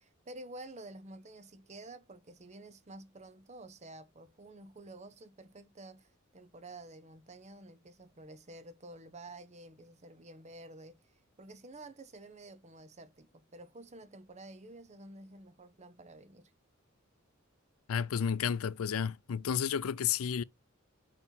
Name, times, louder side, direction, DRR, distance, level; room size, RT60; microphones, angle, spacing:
voice 1, 0.0-16.5, right 2 dB, 35° right, 0.9 m, -50 dB
voice 2, 17.9-20.4, left 7 dB, 80° left, 0.4 m, -31 dB
5.4 x 4.6 x 5.4 m
head